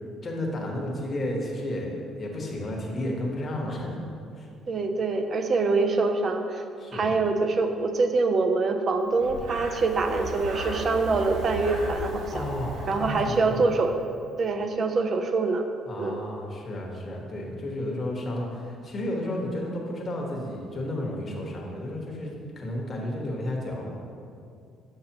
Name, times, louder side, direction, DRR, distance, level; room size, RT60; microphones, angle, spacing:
voice 1, 0.2-4.0 4.4-4.5 6.8-7.1 12.3-13.7 15.8-23.9, left 1 dB, 40° left, -1 dB, 1.2 m, -32 dB
voice 2, 4.7-6.6 6.9-12.4 12.9-13.9 14.4-15.6 16.0-16.2, right 3 dB, 45° right, 6 dB, 0.5 m, -25 dB
Breathing, 9.1-14.0, right 1 dB, 85° right, 1.2 m, -36 dB
6.5 x 5.7 x 2.9 m, 2.4 s
cardioid pair, 95°, 0 cm